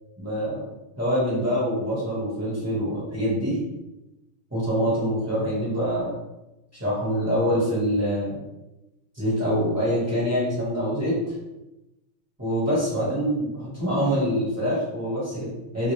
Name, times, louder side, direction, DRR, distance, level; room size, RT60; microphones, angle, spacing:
voice 1, 0.2-0.6 1.0-3.6 4.5-6.1 6.7-8.4 9.1-11.2 12.4-15.9, equal, 10° right, -9 dB, 1.0 m, -25 dB
3.7 x 2.4 x 3.2 m, 0.97 s
omnidirectional pair, 2.4 m